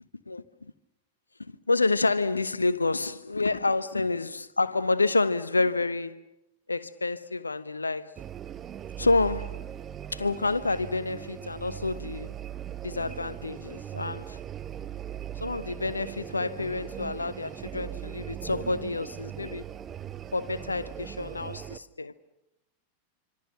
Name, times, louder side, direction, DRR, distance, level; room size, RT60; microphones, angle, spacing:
voice 1, 1.4-6.2 6.7-8.1 9.0-9.6 10.1-12.4 12.8-14.4 15.4-19.6 20.3-22.1, left 3 dB, 80° left, 1.0 m, -28 dB
sound 1, 8.2-21.8, right 10 dB, 25° right, 0.8 m, -39 dB
26.0 x 26.0 x 6.8 m
figure-of-eight pair, 90°, 0 cm